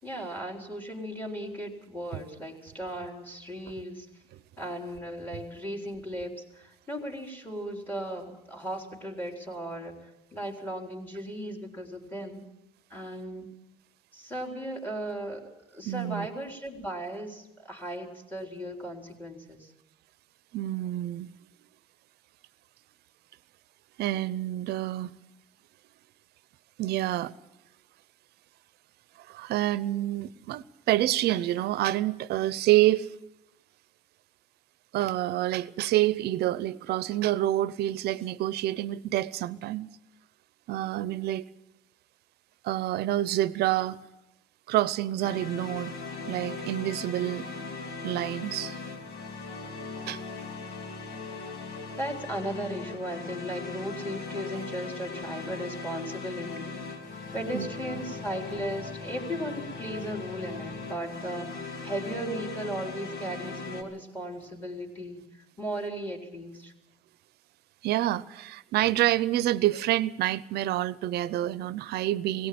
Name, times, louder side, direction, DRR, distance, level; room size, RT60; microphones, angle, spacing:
voice 1, 0.0-4.1 4.6-12.4 12.9-13.5 14.1-19.7 52.0-56.8 57.3-65.2 65.6-66.7, right 1 dB, 10° left, 3.9 m, -36 dB
voice 2, 15.8-16.3 20.5-21.3 24.0-25.1 26.8-27.3 29.3-33.2 34.9-39.9 40.7-41.4 42.6-44.0 44.7-45.9 46.3-47.5 48.0-48.8 50.0-50.2 57.5-57.7 67.8-72.5, right 14 dB, 75° right, 0.7 m, -27 dB
sound 1, 45.2-63.8, left 4 dB, 65° left, 2.9 m, -39 dB
18.0 x 17.5 x 8.6 m
cardioid pair, 110°, 17 cm